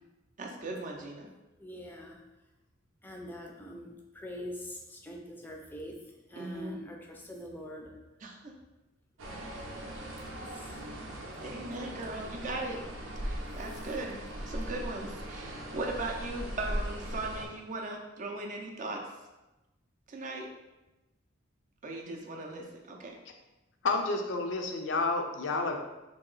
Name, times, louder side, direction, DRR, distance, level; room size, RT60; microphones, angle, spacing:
voice 1, 0.4-1.3 6.3-6.8 8.2-8.5 9.3-9.5 11.4-12.8 13.2-14.2 14.5-19.0 20.1-20.5 21.8-23.2, right 2 dB, 40° right, 1 dB, 0.5 m, -38 dB
voice 2, 1.6-2.2 3.0-5.9 6.3-7.9 9.7-9.8 11.8-12.6 13.6-13.8, left 1 dB, 10° left, 0 dB, 0.5 m, -44 dB
sound 1, 9.2-17.5, equal, 85° right, 0.6 m, -39 dB
voice 3, 23.8-25.8, left 3 dB, 65° left, 4 dB, 0.4 m, -30 dB
2.9 x 2.8 x 3.9 m, 1.0 s
head